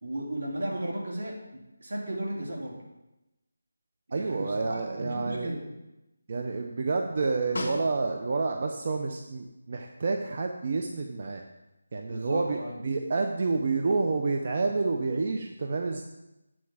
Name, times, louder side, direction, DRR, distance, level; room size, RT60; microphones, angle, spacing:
voice 1, 0.0-2.8 4.1-5.6 12.1-12.8, right 1 dB, 75° right, -2 dB, 2.7 m, -35 dB
voice 2, 4.1-5.5 6.3-11.4 11.9-12.6 12.8-16.0, right 3 dB, 35° right, 3 dB, 0.6 m, -29 dB
Snare drum, 7.6-8.5 12.9-13.0, left 1 dB, 55° left, 1.5 m, -36 dB
8.7 x 4.5 x 7.2 m, 0.96 s
figure-of-eight pair, 175°, 0 cm